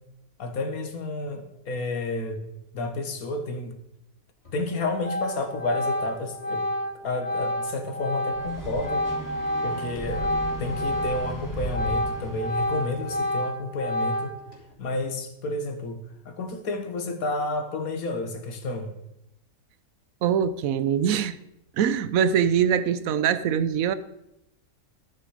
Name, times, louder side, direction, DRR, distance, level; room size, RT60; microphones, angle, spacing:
voice 1, 0.4-2.4 2.7-3.8 4.5-6.7 7.0-9.0 9.6-10.3 10.6-14.4 14.8-18.9, left 2 dB, 85° left, 6 dB, 1.7 m, -31 dB
Organ, 4.5-4.7 5.0-11.4 11.6-14.5, left 1 dB, 45° left, 2.9 m, -29 dB
sound 1, 8.3-13.2, right 1 dB, 15° left, 2.3 m, -36 dB
voice 2, 20.2-21.4 21.7-23.9, right 8 dB, 80° right, 14 dB, 1.1 m, -23 dB
12.0 x 8.9 x 4.9 m, 0.85 s
omnidirectional pair, 1.5 m